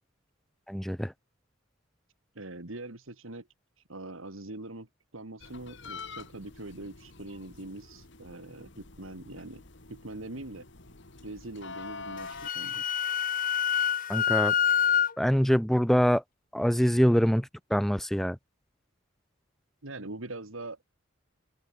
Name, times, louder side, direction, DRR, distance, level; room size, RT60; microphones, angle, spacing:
voice 1, 0.7-1.1 14.1-14.5 15.2-16.2 16.5-18.4, equal, ahead, 0.5 m, -24 dB
voice 2, 2.3-3.5 3.9-4.9 5.1-9.6 9.9-10.7 11.2-12.8 19.8-20.8, right 2 dB, 75° right, 2.4 m, -42 dB
sound 1, 5.4-12.5, left 4 dB, 60° left, 2.4 m, -46 dB
Wind instrument woodwind instrument, 12.2-15.1, left 9 dB, 40° left, 0.9 m, -26 dB
open air
head